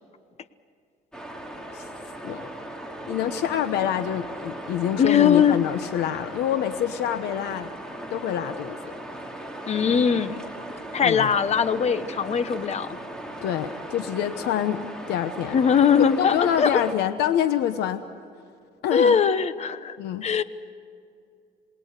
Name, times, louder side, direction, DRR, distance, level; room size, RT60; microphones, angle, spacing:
sound 1, 1.1-16.9, right 1 dB, 5° left, 3.0 m, -38 dB
voice 1, 3.1-7.7 8.1-8.9 11.0-11.3 13.4-15.6 15.9-18.0 18.8-19.2 20.0-20.3, left 10 dB, 80° left, 10 dB, 1.0 m, -26 dB
voice 2, 5.0-5.6 9.7-10.4 10.9-13.0 15.5-16.8 18.9-20.0 20.2-20.4, left 7 dB, 40° left, 13 dB, 1.1 m, -21 dB
28.0 x 20.5 x 6.7 m, 2.4 s
cardioid pair, 110°, 17 cm